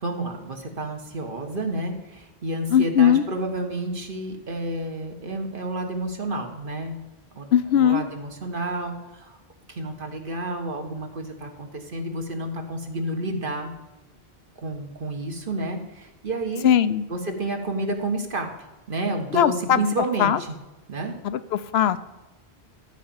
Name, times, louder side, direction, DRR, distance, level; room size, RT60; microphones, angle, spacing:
voice 1, 0.0-7.0 7.3-7.5 7.7-9.4 9.7-13.7 14.6-16.7 17.1-18.5 18.9-20.5 20.9-21.1, right 1 dB, 55° right, 3 dB, 1.6 m, -30 dB
voice 2, 2.7-3.2 7.5-8.0 16.6-17.0 19.3-19.8 20.2-20.4 21.2-22.0, left 9 dB, 75° left, 14 dB, 0.9 m, -19 dB
13.5 x 5.1 x 7.1 m, 1.1 s
omnidirectional pair, 1.1 m